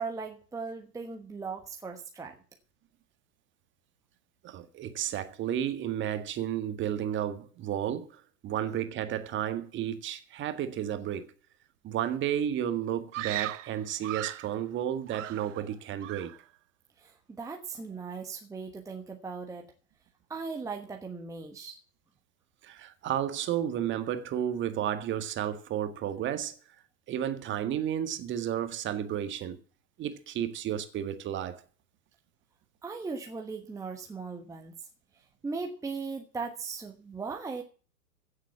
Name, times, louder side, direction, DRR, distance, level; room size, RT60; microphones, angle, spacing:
voice 1, 0.0-2.4 17.0-19.7 20.3-21.8 32.8-34.8 35.4-37.6, right 4 dB, 5° right, 1.2 m, -38 dB
voice 2, 4.4-11.3 11.8-16.3 18.1-18.2 22.6-26.6 27.1-29.6 30.0-31.6, right 10 dB, 25° right, 1.7 m, -32 dB
Screaming, 13.1-14.5 15.1-15.7 16.0-16.4, right 15 dB, 50° right, 0.8 m, -37 dB
16.0 x 7.7 x 7.2 m
figure-of-eight pair, 110°, 49 cm